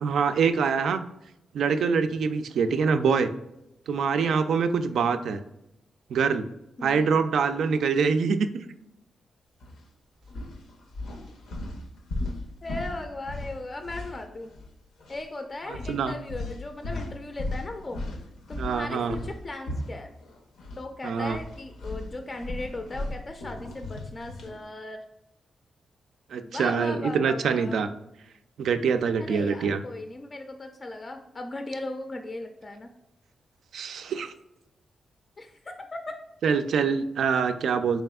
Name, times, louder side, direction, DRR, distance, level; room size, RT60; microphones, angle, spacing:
voice 1, 0.0-1.0 1.5-3.3 3.9-5.4 6.1-6.5 6.8-8.5 15.7-16.1 18.6-19.2 21.0-21.4 26.3-27.9 28.6-29.8 33.7-34.3 36.4-38.0, right 5 dB, 80° right, 9 dB, 0.3 m, -25 dB
voice 2, 4.9-5.3 6.8-7.2 12.6-14.5 15.1-18.0 18.5-20.2 20.8-25.0 26.4-27.8 29.2-32.9 35.4-36.2, left 2 dB, 35° left, 5 dB, 0.4 m, -37 dB
sound 1, 9.6-9.8 10.2-14.7 15.0-15.2 15.7-20.8 21.2-24.6, left 2 dB, 85° left, 0.6 m, -37 dB
4.1 x 3.4 x 2.3 m, 0.86 s
cardioid pair, 85°, 0 cm